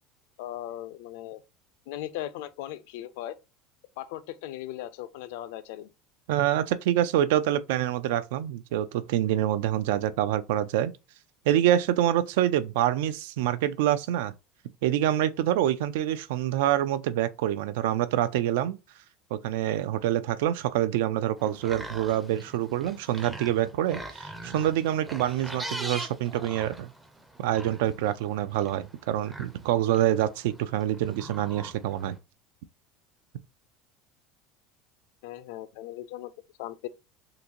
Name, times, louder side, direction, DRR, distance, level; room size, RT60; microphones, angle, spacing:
voice 1, 0.4-1.4 1.9-3.4 4.0-5.9 35.2-36.3 36.6-36.9, left 13 dB, 70° left, 0.4 m, -38 dB
voice 2, 6.3-10.9 11.5-14.3 14.8-18.8 19.3-26.9 27.4-32.2, right 12 dB, 85° right, 0.3 m, -26 dB
sound 1, 21.4-32.2, right 1 dB, 5° right, 0.4 m, -42 dB
3.8 x 2.5 x 2.8 m
cardioid pair, 180°, 0 cm